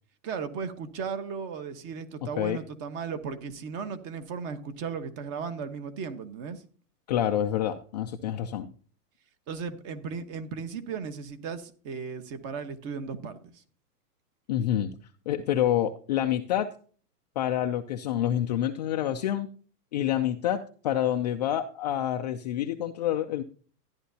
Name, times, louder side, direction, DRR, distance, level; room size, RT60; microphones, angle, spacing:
voice 1, 0.2-6.6 9.5-13.6, right 5 dB, 30° right, 10 dB, 1.2 m, -36 dB
voice 2, 7.1-8.7 14.5-15.0 15.3-16.7 17.4-19.5 19.9-23.4, left 11 dB, 30° left, 4 dB, 0.4 m, -27 dB
13.5 x 10.5 x 2.8 m, 0.41 s
hypercardioid pair, 140°, 48 cm